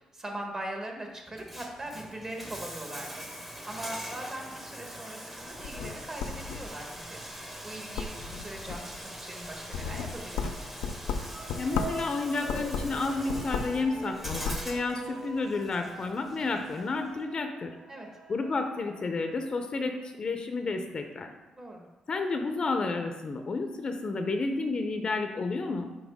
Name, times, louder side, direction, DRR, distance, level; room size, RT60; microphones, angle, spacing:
voice 1, 0.0-8.9 9.2-10.5 17.9-18.1 21.6-21.9, right 1 dB, 30° right, 1 dB, 1.4 m, -41 dB
Bathtub (filling or washing), 1.3-17.2, equal, 10° right, 1.0 m, -43 dB
sound 1, 5.5-7.0 7.4-7.7 7.9-9.0 9.4-12.1 12.4-13.8 14.1-14.7, left 6 dB, 90° left, 0.4 m, -34 dB
sound 2, 11.2-19.7, right 2 dB, 45° right, 2.0 m, -45 dB
voice 2, 11.6-17.7 18.3-21.3 22.1-25.9, left 3 dB, 45° left, 6 dB, 0.6 m, -31 dB
6.3 x 4.7 x 3.6 m, 1.1 s
cardioid pair, 70°, 2 cm